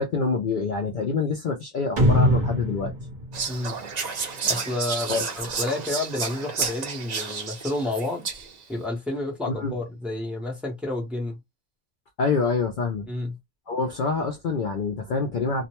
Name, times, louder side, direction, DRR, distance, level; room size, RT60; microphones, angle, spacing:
voice 1, 0.0-2.9 5.1-5.2 9.5-9.7 12.2-13.1 13.7-15.7, left 4 dB, 70° left, 0.4 m, -26 dB
sound 1, 2.0-4.5, left 1 dB, 40° right, 0.9 m, -23 dB
Whispering, 3.3-8.6, right 5 dB, 55° right, 0.4 m, -31 dB
voice 2, 3.5-3.8 4.5-8.3 8.7-11.4 13.1-13.4, left 2 dB, ahead, 0.7 m, -30 dB
2.5 x 2.1 x 2.9 m
omnidirectional pair, 1.5 m